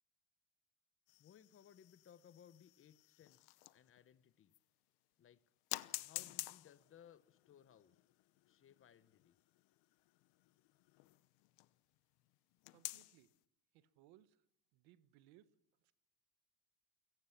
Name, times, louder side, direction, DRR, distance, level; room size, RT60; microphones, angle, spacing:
sound 1, 1.1-4.0 4.5-4.6 5.7-11.7 12.6-13.3, left 21 dB, 85° left, 0.9 m, -50 dB
voice 1, 1.2-4.5 5.2-5.4 6.0-7.9 8.4-9.3, left 9 dB, 35° left, 1.0 m, -63 dB
voice 2, 12.7-13.3 13.7-14.5 14.7-15.9, right 13 dB, 80° right, 1.5 m, -67 dB
29.0 x 17.0 x 5.9 m
cardioid pair, 140°, 38 cm